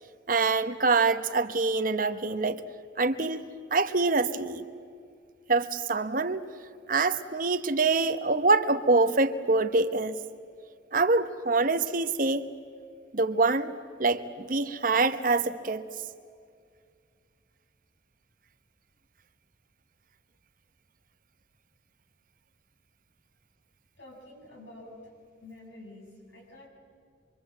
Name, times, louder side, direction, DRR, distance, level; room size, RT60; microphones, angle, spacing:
voice 1, 0.3-2.6 3.0-3.4 3.7-4.6 5.5-6.4 6.9-10.2 10.9-12.4 13.1-15.9, right 3 dB, 45° right, 10 dB, 1.0 m, -25 dB
voice 2, 24.0-25.1 25.4-26.7, left 1 dB, 70° left, -1 dB, 6.7 m, -48 dB
26.0 x 23.5 x 7.8 m, 2.2 s
head